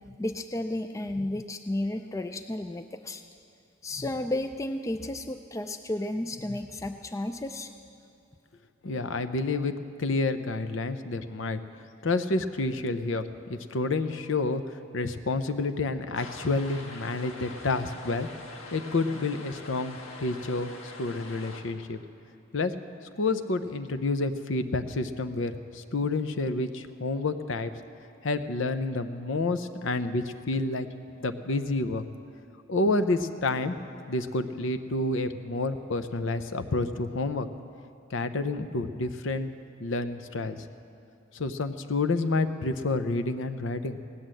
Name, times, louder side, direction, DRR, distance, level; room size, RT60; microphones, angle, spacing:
voice 1, 0.2-3.2 3.8-7.7, left 1 dB, 15° left, 8 dB, 0.3 m, -32 dB
voice 2, 8.8-11.6 12.0-14.6 14.9-18.3 18.7-22.0 22.5-22.7 23.2-27.7 28.2-30.9 31.2-32.0 32.7-33.8 34.1-37.5 38.1-39.5 39.8-40.6 41.3-44.0, left 2 dB, 70° left, 10 dB, 0.7 m, -29 dB
sound 1, 16.1-21.6, left 2 dB, 85° left, 1.6 m, -44 dB
17.0 x 10.0 x 7.7 m, 2.5 s
head